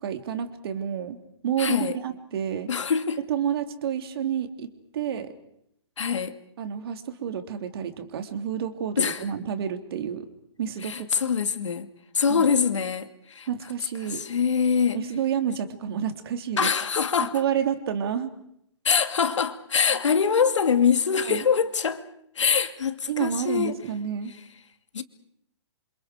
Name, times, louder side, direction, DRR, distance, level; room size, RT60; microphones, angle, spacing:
voice 1, 0.0-1.2 1.4-2.7 3.2-5.3 6.6-10.3 10.6-11.1 12.3-12.5 13.5-14.2 14.9-16.7 17.2-18.3 21.2-21.4 23.1-24.3, right 8 dB, 55° right, 3.2 m, -29 dB
voice 2, 1.6-2.0 2.7-3.2 6.0-6.4 9.0-9.2 10.8-11.9 12.1-13.5 14.0-15.0 16.6-17.3 18.8-22.0 22.4-23.8 24.9-25.0, left 6 dB, 75° left, 2.5 m, -24 dB
28.0 x 27.5 x 5.1 m
hypercardioid pair, 145°, 15 cm